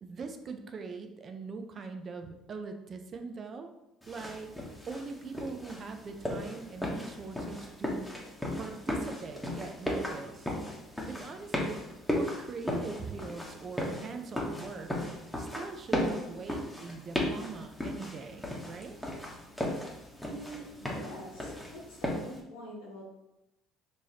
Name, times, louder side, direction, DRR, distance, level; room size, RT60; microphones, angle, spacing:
voice 1, 0.0-3.7 4.1-4.5 4.9-8.1 8.6-10.6 11.1-11.8 12.1-14.9 15.4-19.0, right 4 dB, 45° right, 6 dB, 0.5 m, -42 dB
sound 1, 4.0-22.4, left 1 dB, 5° left, 1.1 m, -36 dB
voice 2, 20.1-23.1, right 1 dB, 85° left, -3 dB, 1.4 m, -45 dB
4.6 x 2.8 x 2.8 m, 0.90 s
hypercardioid pair, 70°, 0 cm